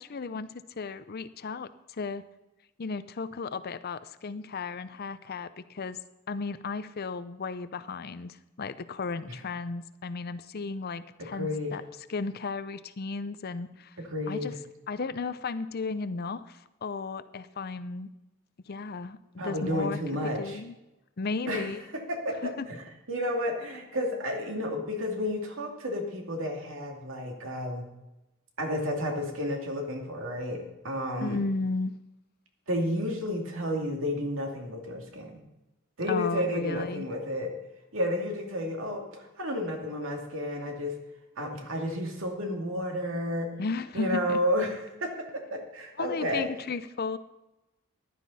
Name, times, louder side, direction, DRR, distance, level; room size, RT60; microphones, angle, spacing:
voice 1, 0.0-2.2 2.8-6.0 6.3-11.8 12.1-14.0 14.3-14.5 14.9-18.1 18.7-19.2 19.4-20.0 20.4-20.7 21.2-21.8 22.4-22.7 31.2-32.0 36.1-37.0 43.6-44.4 46.0-47.2, left 4 dB, 50° left, 13 dB, 0.6 m, -34 dB
voice 2, 11.2-11.8 14.0-14.6 19.4-20.6 21.5-21.7 22.1-22.8 23.1-27.9 28.6-31.4 32.7-35.4 36.0-37.5 37.9-40.9 41.4-43.5 43.9-46.5, left 1 dB, 70° right, 2 dB, 2.4 m, -31 dB
15.0 x 11.5 x 4.1 m, 0.97 s
head